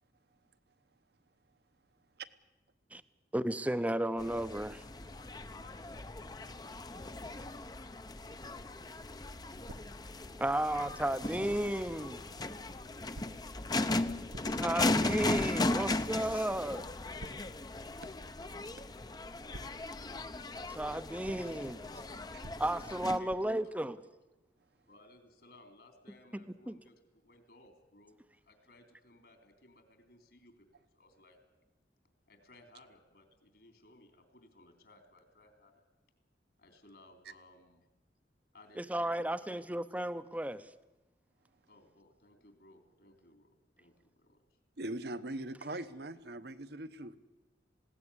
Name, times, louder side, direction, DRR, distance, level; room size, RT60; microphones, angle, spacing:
voice 1, 3.3-4.8 10.3-12.2 12.5-12.6 14.5-16.9 20.7-21.8 22.6-24.0 26.7-26.8 38.8-40.6, right 1 dB, 10° right, 13 dB, 0.7 m, -33 dB
sound 1, 4.2-23.2, left 2 dB, 20° left, 0.7 m, -37 dB
sound 2, 9.7-11.6 13.1-19.2 19.5-25.0, right 1 dB, 85° right, 1.0 m, -55 dB
voice 2, 21.1-21.5 23.2-23.7 24.9-28.2 28.4-31.4 32.3-35.8 36.6-37.8 38.5-39.6 41.7-44.4, left 1 dB, 65° left, 6 dB, 3.2 m, -60 dB
voice 3, 44.8-47.2, right 1 dB, 60° right, 12 dB, 1.1 m, -41 dB
20.0 x 17.0 x 9.8 m, 1.1 s
head